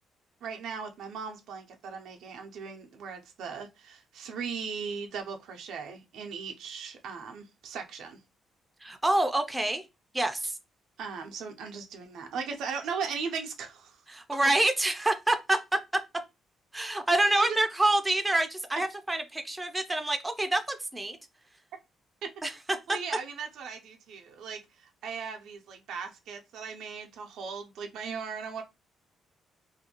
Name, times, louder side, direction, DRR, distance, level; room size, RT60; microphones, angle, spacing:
voice 1, 0.4-8.2 11.0-14.0 17.3-17.6 22.9-28.6, right 6 dB, 80° right, 0.5 m, -38 dB
voice 2, 8.8-9.8 10.1-10.5 14.1-16.0 16.7-21.2 22.4-22.8, right 2 dB, 15° right, 0.4 m, -27 dB
2.5 x 2.2 x 2.8 m
cardioid pair, 90°, 0 cm